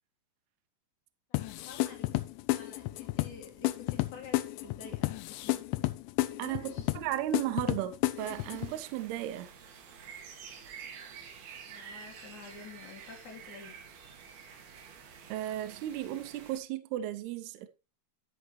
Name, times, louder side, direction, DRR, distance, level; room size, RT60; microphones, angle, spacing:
sound 1, 1.3-8.7, left 18 dB, 80° left, 2.7 m, -32 dB
voice 1, 1.3-5.6 6.3-6.9 11.7-13.8, left 5 dB, 55° left, 2.5 m, -50 dB
voice 2, 6.4-9.5 15.3-17.7, right 13 dB, 85° right, 2.2 m, -35 dB
sound 2, 8.2-16.6, right 6 dB, 65° right, 3.1 m, -49 dB
11.5 x 6.4 x 3.2 m
omnidirectional pair, 5.6 m